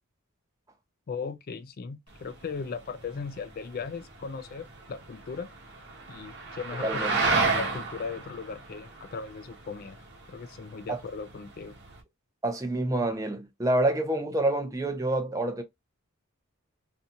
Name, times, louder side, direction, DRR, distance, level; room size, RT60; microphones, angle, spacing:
voice 1, 1.1-5.5 6.1-7.0 7.3-10.0 10.3-11.8, left 5 dB, 45° left, 0.4 m, -37 dB
sound 1, 2.1-12.0, right 3 dB, 55° right, 1.0 m, -33 dB
voice 2, 6.8-7.2 10.9-11.0 12.4-15.6, right 1 dB, 15° right, 0.5 m, -27 dB
2.6 x 2.3 x 2.7 m
head